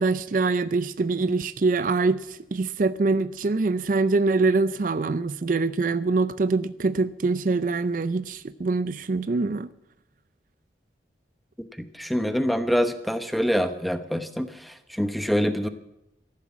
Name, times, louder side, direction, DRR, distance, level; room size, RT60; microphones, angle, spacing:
voice 1, 0.0-9.7, right 3 dB, 50° right, 0.4 m, -24 dB
voice 2, 11.8-15.7, equal, ahead, 0.9 m, -25 dB
14.0 x 11.5 x 7.3 m
head